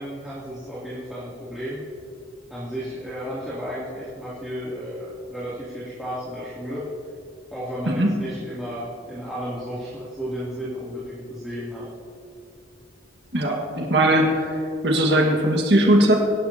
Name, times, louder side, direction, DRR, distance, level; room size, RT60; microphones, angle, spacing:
voice 1, 0.0-1.8 2.5-6.8 7.5-11.9, equal, ahead, -11 dB, 2.8 m, -33 dB
voice 2, 13.3-14.6 14.8-16.2, right 1 dB, 70° right, 0 dB, 1.8 m, -19 dB
24.0 x 11.5 x 2.9 m, 2.6 s
head